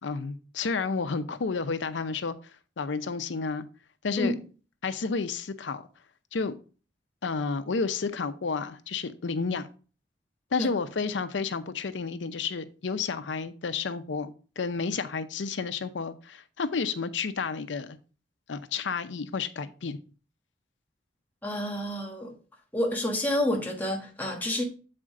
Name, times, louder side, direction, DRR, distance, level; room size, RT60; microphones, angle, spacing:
voice 1, 0.0-2.3 2.8-3.7 4.0-4.3 4.8-5.9 6.3-6.5 7.2-9.7 10.5-18.0 18.5-20.0, left 4 dB, 80° left, 0.6 m, -31 dB
voice 2, 21.4-22.3 22.7-24.6, left 1 dB, 10° left, 1.3 m, -29 dB
7.8 x 4.2 x 3.7 m
head